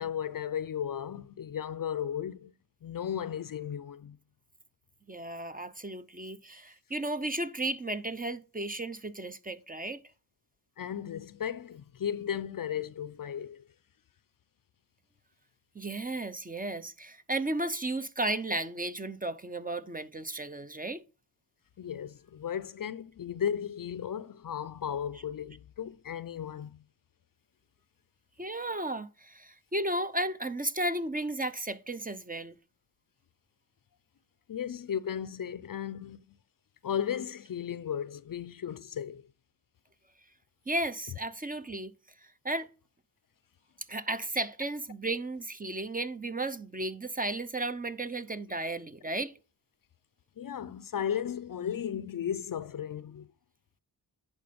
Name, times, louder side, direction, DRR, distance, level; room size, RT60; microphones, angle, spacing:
voice 1, 0.0-2.5 2.8-4.2 10.8-13.7 21.8-26.8 34.5-36.4 36.8-39.2 50.4-53.3, left 9 dB, 50° left, 0.5 m, -35 dB
voice 2, 5.1-10.0 15.7-21.0 28.4-32.5 40.7-41.9 42.2-42.7 43.9-49.3, right 2 dB, 20° right, 0.6 m, -34 dB
10.5 x 4.4 x 5.1 m
cardioid pair, 50°, 43 cm